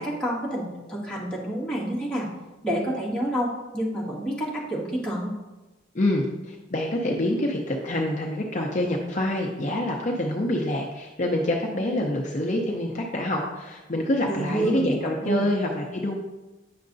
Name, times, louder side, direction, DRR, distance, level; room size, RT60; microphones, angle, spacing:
voice 1, 0.0-2.3 2.6-5.3 14.2-14.8 15.2-15.5, right 1 dB, 5° left, -7 dB, 1.9 m, -28 dB
voice 2, 5.9-16.2, left 1 dB, 40° left, 0 dB, 0.7 m, -26 dB
9.5 x 6.5 x 2.6 m, 1.1 s
head